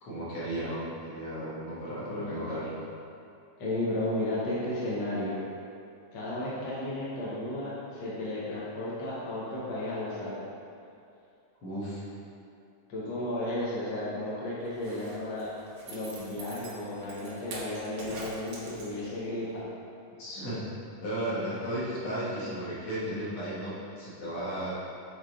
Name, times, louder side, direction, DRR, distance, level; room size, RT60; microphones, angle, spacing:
voice 1, 0.0-2.7 11.6-12.1 20.2-20.6 21.0-24.7, right 1 dB, 50° left, -9 dB, 2.0 m, -34 dB
voice 2, 2.1-2.8 3.6-5.4 6.1-10.4 12.9-15.5 15.9-19.6, left 1 dB, 65° left, -8 dB, 1.1 m, -33 dB
Zipper (clothing), 14.7-19.3 19.6-19.7, right 2 dB, 75° right, 1.1 m, -45 dB
7.9 x 4.0 x 3.8 m, 2.5 s
omnidirectional pair, 3.8 m